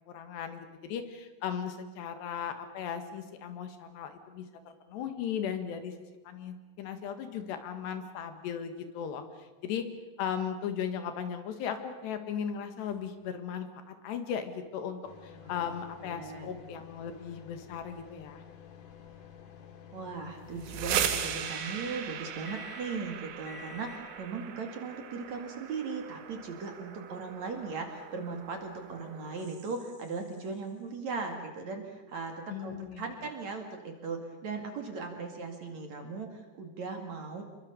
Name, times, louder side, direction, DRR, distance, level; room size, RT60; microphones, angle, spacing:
voice 1, 0.1-4.5 4.9-5.9 6.3-9.2 9.6-9.9 10.2-18.4 32.5-33.0, left 8 dB, 75° left, 8 dB, 3.8 m, -37 dB
sound 1, 15.0-24.2, left 8 dB, 55° left, 2.9 m, -50 dB
voice 2, 15.3-15.8 16.0-16.6 19.9-37.4, right 4 dB, 45° right, 4 dB, 3.0 m, -38 dB
sound 2, 20.4-30.2, right 9 dB, 90° right, 4.0 m, -38 dB
27.5 x 22.5 x 6.9 m, 1.2 s
omnidirectional pair, 5.0 m